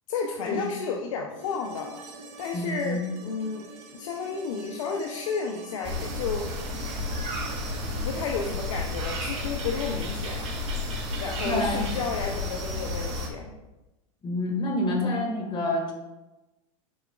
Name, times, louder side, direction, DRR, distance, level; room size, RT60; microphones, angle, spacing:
voice 1, 0.1-2.0 2.4-3.6 3.9-6.5 7.9-10.5 11.2-13.5, left 5 dB, 75° left, 1 dB, 0.8 m, -32 dB
sound 1, 1.4-9.4 11.6-11.7, right 2 dB, 65° right, 1.7 m, -47 dB
voice 2, 2.5-3.0 11.4-11.9 14.2-15.9, left 1 dB, 30° left, 3 dB, 1.8 m, -27 dB
sound 2, 5.8-13.3, left 2 dB, 40° right, 2.3 m, -32 dB
11.0 x 4.7 x 2.4 m, 1.0 s
hypercardioid pair, 105°, 17 cm